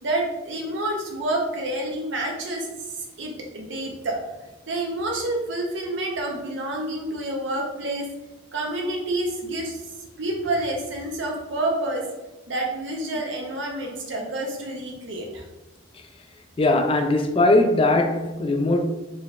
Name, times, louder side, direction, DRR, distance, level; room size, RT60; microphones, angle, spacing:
voice 1, 0.0-4.2 4.6-8.1 8.5-9.8 10.2-12.1 12.5-15.4, right 1 dB, 70° right, 0.7 m, -28 dB
voice 2, 16.6-18.8, left 2 dB, 30° left, 0.3 m, -20 dB
3.9 x 3.2 x 2.4 m
head